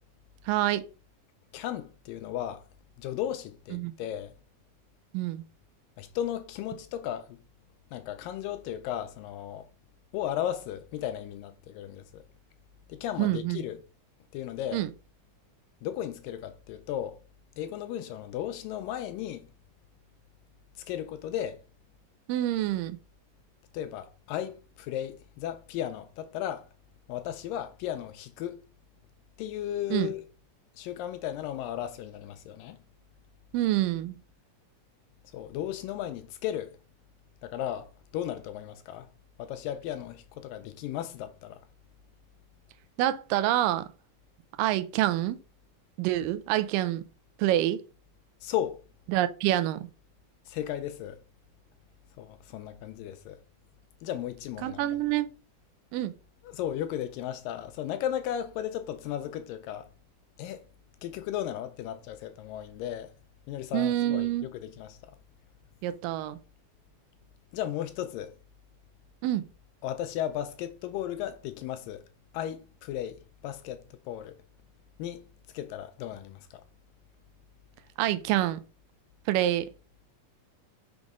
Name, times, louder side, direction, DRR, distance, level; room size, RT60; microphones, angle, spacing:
voice 1, 0.5-0.8 3.7-3.9 5.1-5.4 13.2-13.7 14.7-14.9 22.3-23.0 29.9-30.1 33.5-34.2 43.0-43.9 44.6-45.4 46.0-47.0 47.4-47.8 49.1-49.9 54.6-55.3 55.9-56.1 63.7-64.5 65.8-66.4 69.2-69.5 78.0-78.6 79.3-79.7, right 14 dB, 80° right, 2.1 m, -27 dB
voice 2, 1.5-2.6 3.0-4.3 6.0-7.4 7.9-9.7 10.1-12.2 12.9-13.8 14.3-14.8 15.8-17.2 17.6-19.5 20.9-21.6 23.7-26.7 27.1-28.6 29.4-30.2 30.8-32.8 35.3-36.8 37.4-39.1 39.4-41.6 48.4-48.8 50.5-51.2 52.2-53.4 54.0-54.8 56.4-59.9 60.4-60.7 61.0-63.1 63.5-65.2 67.5-68.3 69.8-72.0 72.3-74.4 75.0-75.3 75.5-76.6, left 11 dB, 80° left, 2.1 m, -35 dB
6.3 x 5.1 x 3.6 m
omnidirectional pair, 4.3 m